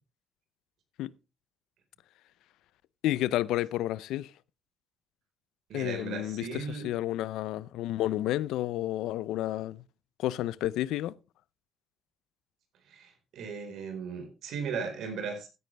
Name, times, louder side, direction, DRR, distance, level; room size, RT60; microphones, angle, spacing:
voice 1, 3.0-4.3 5.7-9.8 10.2-11.2, left 14 dB, 90° left, 0.5 m, -31 dB
voice 2, 5.7-6.8 12.9-15.5, right 5 dB, 80° right, 4.4 m, -37 dB
15.0 x 9.4 x 3.3 m
cardioid pair, 90°, 0 cm